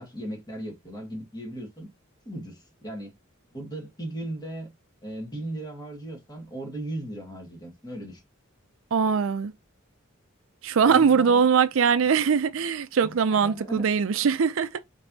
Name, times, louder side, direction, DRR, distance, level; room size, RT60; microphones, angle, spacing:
voice 1, 0.0-1.9 2.3-3.1 3.5-4.7 5.0-8.2 10.8-11.4 13.0-13.9, right 1 dB, 20° left, 1.8 m, -37 dB
voice 2, 8.9-9.5 10.6-14.7, right 6 dB, 70° right, 0.4 m, -21 dB
5.4 x 3.3 x 2.7 m
head